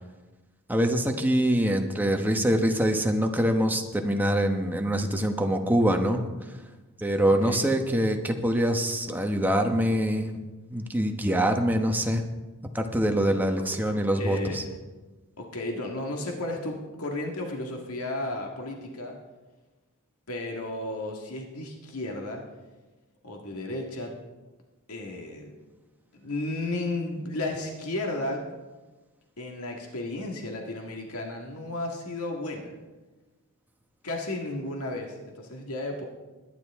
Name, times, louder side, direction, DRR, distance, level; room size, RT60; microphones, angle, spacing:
voice 1, 0.7-6.6 7.0-10.4 10.7-12.3 12.7-14.6, equal, 10° right, 4 dB, 1.1 m, -24 dB
voice 2, 7.3-7.7 13.6-14.6 15.4-19.2 20.3-22.4 23.2-24.1 24.9-25.5 26.2-28.4 29.4-32.7 34.0-36.0, left 2 dB, 90° left, 1 dB, 1.8 m, -33 dB
21.0 x 10.5 x 3.6 m, 1.2 s
head